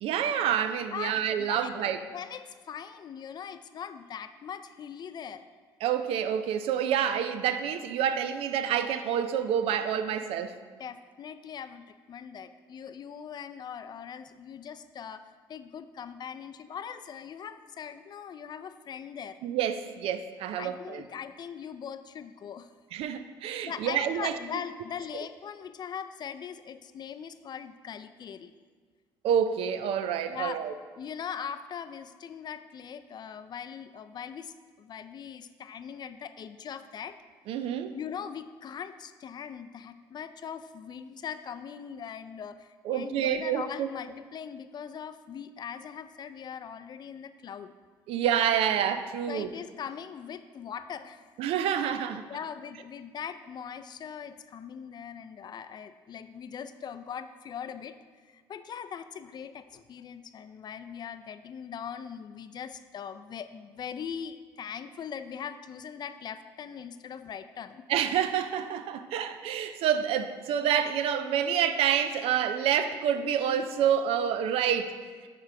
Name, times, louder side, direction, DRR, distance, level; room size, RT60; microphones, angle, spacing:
voice 1, 0.0-2.0 5.8-10.6 19.4-21.0 22.9-24.4 29.2-30.7 37.5-38.0 42.9-43.9 48.1-49.5 51.4-52.2 67.9-75.0, right 9 dB, 70° right, 10 dB, 0.4 m, -28 dB
voice 2, 0.9-5.4 10.8-15.2 15.5-19.4 20.6-22.7 23.5-28.5 30.3-30.6 31.0-37.2 37.9-47.7 49.3-51.3 52.3-58.0 58.3-67.8, left 7 dB, 45° left, 11 dB, 0.4 m, -41 dB
9.3 x 3.8 x 3.3 m, 1.5 s
supercardioid pair, 75°, 10 cm